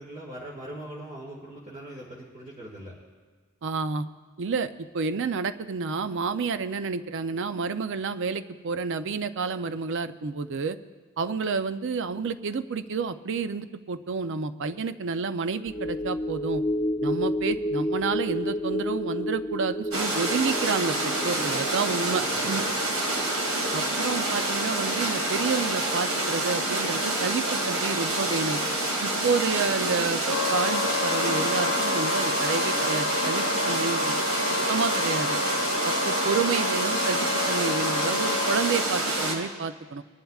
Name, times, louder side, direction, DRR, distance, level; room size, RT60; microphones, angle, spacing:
voice 1, 0.0-2.9 22.2-22.5, right 1 dB, 30° right, -6 dB, 1.7 m, -41 dB
voice 2, 3.6-4.1 4.4-10.8 11.2-16.6 17.0-22.6 23.7-28.6 29.0-34.1 34.7-35.4 35.8-40.0, right 4 dB, 55° right, 12 dB, 0.5 m, -29 dB
sound 1, 15.7-26.3 26.6-26.8, equal, 20° left, 0.5 m, -32 dB
sound 2, 19.9-39.3, right 1 dB, 75° right, 2.1 m, -27 dB
Wind instrument woodwind instrument, 30.3-38.8, left 4 dB, 80° left, 0.4 m, -30 dB
21.0 x 11.5 x 2.4 m, 1.5 s
head